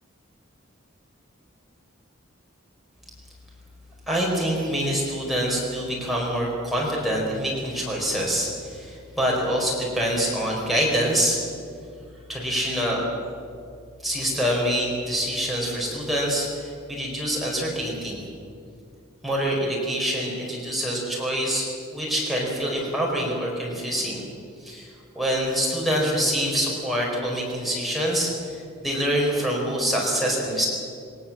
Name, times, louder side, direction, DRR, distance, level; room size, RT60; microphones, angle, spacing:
voice 1, 4.1-11.4 12.3-13.0 14.0-18.2 19.2-21.7 21.9-24.3 24.6-24.9 25.1-30.7, equal, ahead, -4 dB, 4.6 m, -25 dB
21.5 x 19.5 x 7.4 m, 2.3 s
head